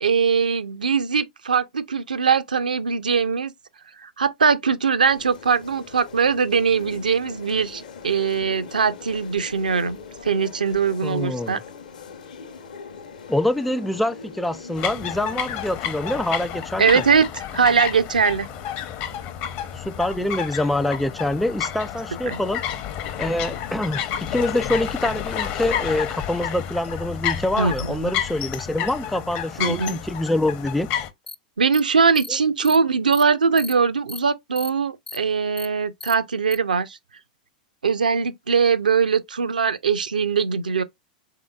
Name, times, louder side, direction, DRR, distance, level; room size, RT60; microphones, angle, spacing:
voice 1, 0.0-3.5 4.0-11.6 16.8-17.3 17.5-18.5 22.3-22.4 27.6-28.1 29.6-30.0 31.6-37.0 37.8-40.8, right 5 dB, 75° right, 0.4 m, -21 dB
sound 1, 5.0-15.7, left 5 dB, 70° left, 0.9 m, -41 dB
voice 2, 11.0-11.6 13.3-17.0 19.7-22.6 23.2-30.9 32.3-32.4, left 1 dB, ahead, 0.3 m, -25 dB
sound 2, 14.8-31.1, left 9 dB, 40° left, 0.7 m, -30 dB
sound 3, 31.3-31.4 31.7-31.8 32.1-32.3 32.6-32.8 33.1-33.2 33.6-33.7 34.1-34.2 34.6-34.7 35.1-35.2 35.6-35.7 36.0-36.1 36.5-36.6, left 3 dB, 85° left, 0.3 m, -36 dB
3.7 x 3.6 x 2.2 m
figure-of-eight pair, 95°, 4 cm